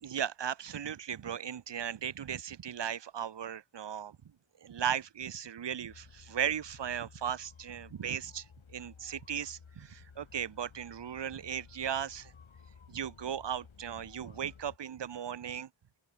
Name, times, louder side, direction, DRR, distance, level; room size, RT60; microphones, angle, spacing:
voice 1, 0.0-4.2 4.6-8.5 8.7-12.3 12.9-15.7, right 9 dB, 60° right, 0.9 m, -37 dB
sound 1, 5.9-14.8, left 6 dB, 70° left, 3.7 m, -56 dB
open air
wide cardioid pair, 90°, 49 cm